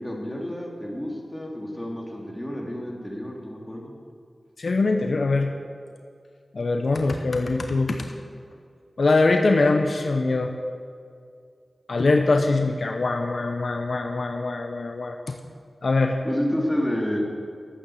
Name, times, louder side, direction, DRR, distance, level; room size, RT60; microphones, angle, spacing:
voice 1, 0.0-4.0 16.2-17.2, equal, 10° left, -2 dB, 3.1 m, -29 dB
voice 2, 4.6-5.5 6.5-8.1 9.0-10.5 11.9-15.4 15.8-16.2, left 3 dB, 70° left, 4 dB, 0.8 m, -22 dB
12.5 x 8.8 x 6.4 m, 2.2 s
cardioid pair, 45°, 0 cm